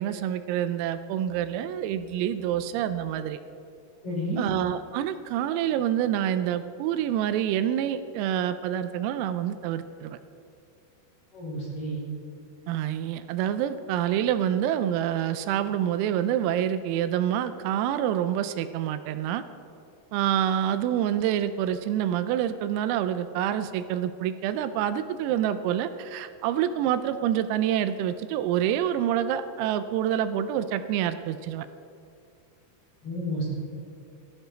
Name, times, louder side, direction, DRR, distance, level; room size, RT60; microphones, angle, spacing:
voice 1, 0.0-3.4 4.4-10.2 12.7-19.4 20.1-31.7, right 10 dB, 85° right, 11 dB, 3.3 m, -27 dB
voice 2, 4.0-4.4 11.3-12.0 33.0-33.5, equal, 30° left, -6 dB, 5.0 m, -31 dB
19.0 x 14.0 x 3.9 m, 2.4 s
omnidirectional pair, 6.0 m